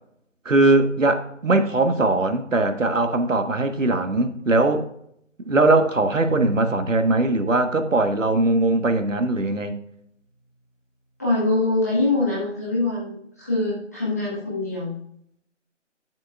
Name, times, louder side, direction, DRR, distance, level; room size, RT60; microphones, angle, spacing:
voice 1, 0.4-4.9 5.5-9.8, right 2 dB, 85° right, 1.3 m, -20 dB
Bowed string instrument, 6.3-9.1, right 1 dB, 35° left, 1.6 m, -36 dB
voice 2, 11.2-15.0, left 2 dB, 15° left, 1.4 m, -24 dB
10.5 x 7.6 x 2.3 m
figure-of-eight pair, 175°, 37 cm